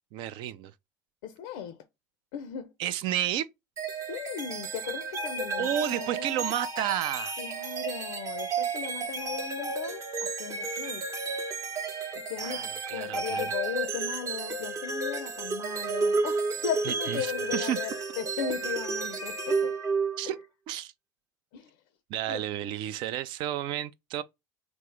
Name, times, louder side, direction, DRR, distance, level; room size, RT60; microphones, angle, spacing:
voice 1, 0.1-0.7 2.8-3.5 5.6-7.4 12.4-13.5 16.9-17.8 20.2-20.4 20.7-20.9 22.1-24.2, right 11 dB, 65° right, 0.4 m, -31 dB
voice 2, 1.2-1.8 2.3-2.7 4.1-6.4 7.4-11.0 12.3-17.9 18.2-19.8 20.2-20.3 21.5-21.7 22.3-22.4, left 8 dB, 75° left, 0.5 m, -37 dB
sound 1, 3.8-20.4, right 3 dB, 35° right, 0.7 m, -32 dB
3.5 x 2.0 x 3.1 m
hypercardioid pair, 80°, 9 cm